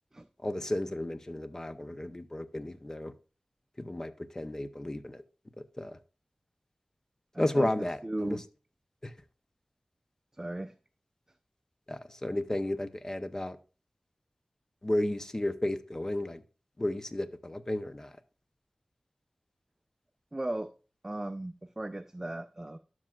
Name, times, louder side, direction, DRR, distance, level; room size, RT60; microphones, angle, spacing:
voice 1, 0.4-3.1 3.8-5.2 5.6-6.0 7.4-8.4 9.0-9.1 11.9-13.6 14.8-16.4 16.8-18.1, left 1 dB, 25° left, 11 dB, 0.6 m, -33 dB
voice 2, 7.3-8.4 10.3-10.7 20.3-20.7 21.0-22.8, right 1 dB, 20° right, 9 dB, 0.4 m, -36 dB
12.0 x 6.1 x 2.3 m, 0.35 s
wide cardioid pair, 70°, 2 cm